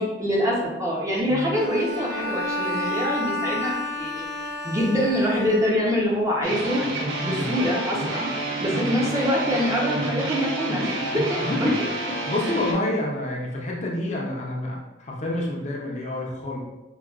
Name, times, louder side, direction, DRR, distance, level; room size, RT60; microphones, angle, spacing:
voice 1, 0.0-3.7 4.0-4.2 4.6-6.8 7.2-8.3 8.6-11.4, equal, 15° right, -3 dB, 0.5 m, -24 dB
Bowed string instrument, 1.5-6.1, left 1 dB, 65° right, 1.0 m, -30 dB
sound 1, 6.4-12.7, right 2 dB, 85° right, 0.6 m, -29 dB
voice 2, 7.2-7.5 8.7-8.9 11.3-11.9 12.3-16.6, left 1 dB, 35° left, -2 dB, 0.5 m, -28 dB
4.6 x 2.2 x 2.3 m, 1.0 s
head